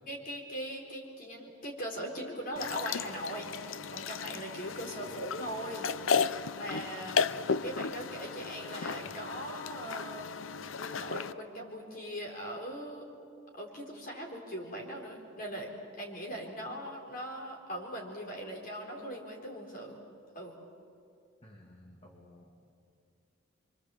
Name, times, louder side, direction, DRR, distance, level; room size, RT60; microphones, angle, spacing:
voice 1, 0.1-5.9 6.2-7.2 7.6-10.3 10.7-13.1 13.5-20.0 20.3-20.6, right 1 dB, 50° left, 0 dB, 4.2 m, -40 dB
sound 1, 2.6-11.3, left 5 dB, 85° left, 0.6 m, -34 dB
voice 2, 4.9-5.3 6.9-7.5 9.1-9.2 21.4-22.6, equal, 30° left, -1 dB, 2.6 m, -56 dB
27.5 x 25.0 x 7.7 m, 2.4 s
head